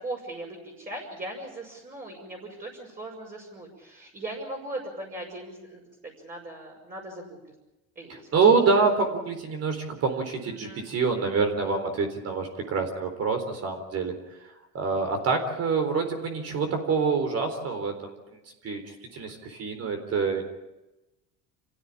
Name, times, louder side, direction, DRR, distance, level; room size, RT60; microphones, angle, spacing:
voice 1, 0.0-5.8 6.2-7.4 8.0-8.3 10.4-10.8, right 1 dB, 25° right, -2 dB, 6.2 m, -39 dB
voice 2, 8.1-14.1 14.7-18.1 18.6-20.5, right 4 dB, 45° right, 6 dB, 4.1 m, -26 dB
28.0 x 16.0 x 8.7 m, 1.0 s
cardioid pair, 135°, 34 cm